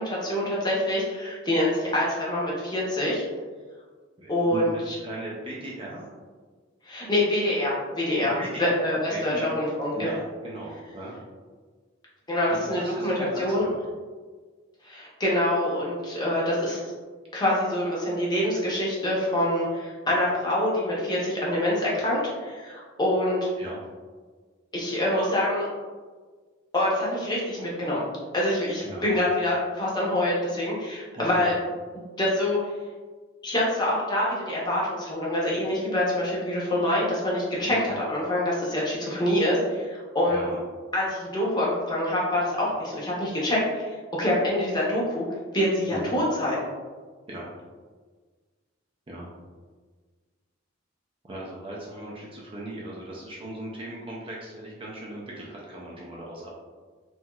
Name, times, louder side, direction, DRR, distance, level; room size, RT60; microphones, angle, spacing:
voice 1, 0.0-3.2 4.3-4.9 6.8-8.3 8.6-10.1 12.3-13.6 14.8-16.8 17.3-23.5 24.7-25.7 26.7-28.0 28.3-31.5 32.2-32.6 33.4-40.4 40.9-45.2 45.5-46.6, left 1 dB, 20° left, -5 dB, 0.7 m, -25 dB
voice 2, 4.2-6.1 8.2-8.8 9.1-9.6 10.0-11.2 12.5-13.9 23.6-23.9 28.8-29.1 31.1-31.6 37.6-37.9 40.3-40.6 45.9-46.1 47.3-47.5 49.1-49.3 51.2-56.5, right 1 dB, 25° right, -4 dB, 0.4 m, -38 dB
3.0 x 2.7 x 2.2 m, 1.4 s
head